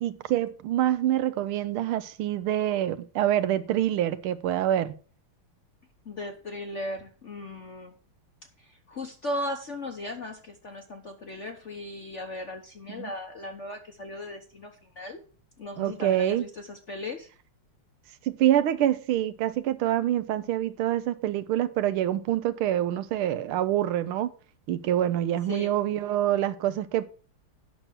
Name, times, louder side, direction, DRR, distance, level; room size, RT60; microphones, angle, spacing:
voice 1, 0.0-4.9 12.9-13.1 15.8-16.4 18.2-24.3 24.7-27.1, right 12 dB, 80° right, 1.5 m, -26 dB
voice 2, 6.0-8.0 8.6-15.2 15.6-17.3 25.5-25.7, left 1 dB, 50° left, 0.9 m, -37 dB
9.3 x 6.1 x 6.1 m
omnidirectional pair, 2.4 m